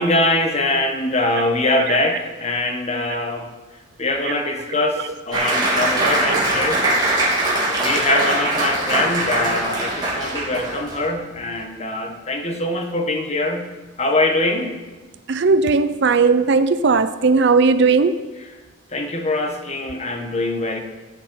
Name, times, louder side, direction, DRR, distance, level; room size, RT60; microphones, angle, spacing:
voice 1, 0.0-3.5 4.0-7.0 7.8-13.7 14.0-14.8 18.9-20.8, left 2 dB, 35° left, 4 dB, 1.2 m, -23 dB
Applause, 5.3-11.0, right 1 dB, 20° right, 2.8 m, -21 dB
voice 2, 6.0-6.4 7.7-7.9 15.3-18.3, right 4 dB, 60° right, 12 dB, 0.5 m, -18 dB
13.0 x 8.5 x 5.5 m, 1.2 s
head